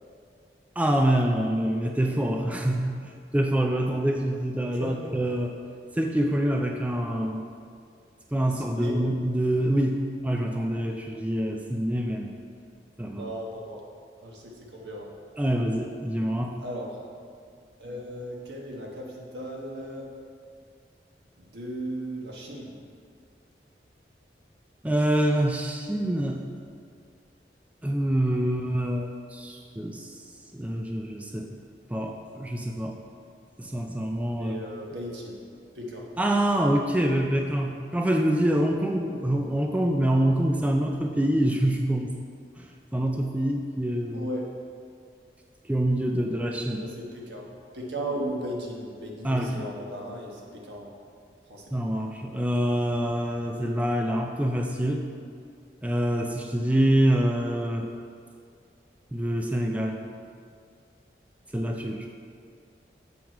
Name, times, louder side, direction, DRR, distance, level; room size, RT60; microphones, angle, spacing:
voice 1, 0.8-5.5 5.9-7.4 8.3-12.3 13.0-13.3 15.4-16.6 24.8-26.4 27.8-30.2 30.5-31.5 31.9-33.0 33.6-34.6 36.2-42.1 42.6-44.3 45.6-46.9 49.2-49.7 51.7-55.1 55.8-57.9 59.1-60.0 61.5-62.1, right 1 dB, 10° right, 2 dB, 0.3 m, -26 dB
voice 2, 4.8-5.1 8.8-9.0 13.1-13.8 14.2-15.1 16.6-16.9 17.8-20.1 21.4-22.7 34.4-35.4 35.7-36.0 44.1-44.5 46.8-47.5 47.7-50.9 51.5-51.6, equal, 80° right, -2 dB, 1.4 m, -36 dB
7.3 x 6.2 x 4.5 m, 2.2 s
head